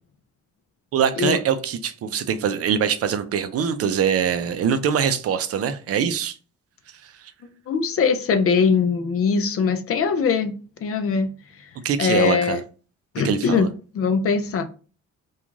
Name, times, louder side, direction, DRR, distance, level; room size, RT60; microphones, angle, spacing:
voice 1, 0.9-6.4 7.0-7.3 11.8-12.6 13.2-13.7, right 7 dB, 50° right, 0.4 m, -23 dB
voice 2, 7.7-10.5 10.8-11.3 12.0-12.6 13.1-13.7 13.9-14.6, left 5 dB, 50° left, 0.4 m, -21 dB
2.4 x 2.3 x 3.0 m
cardioid pair, 90°, 30 cm